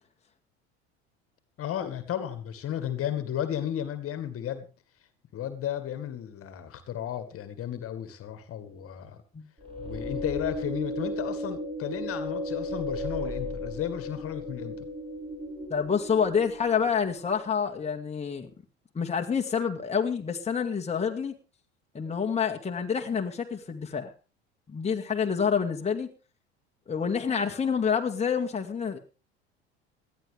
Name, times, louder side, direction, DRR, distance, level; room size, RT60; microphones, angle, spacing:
voice 1, 1.6-4.7 5.3-9.2 9.8-14.9, left 10 dB, 45° left, 12 dB, 2.1 m, -34 dB
sound 1, 9.6-17.0, left 1 dB, 15° right, 5.7 m, -35 dB
voice 2, 15.7-18.5 18.9-21.3 21.9-24.1 24.7-26.1 26.9-29.0, left 6 dB, 20° left, 3 dB, 2.0 m, -28 dB
19.0 x 13.0 x 3.5 m, 0.31 s
hypercardioid pair, 75°, 32 cm